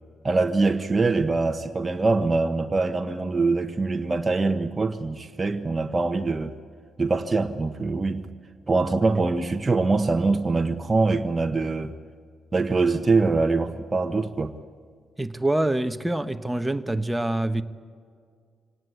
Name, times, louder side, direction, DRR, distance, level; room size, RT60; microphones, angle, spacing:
voice 1, 0.2-6.5 7.0-8.3 8.7-11.9 12.5-14.5, right 3 dB, 30° right, 1.2 m, -23 dB
voice 2, 15.2-17.6, right 1 dB, 10° right, 1.3 m, -25 dB
25.0 x 18.5 x 8.4 m
hypercardioid pair, 45°, 0 cm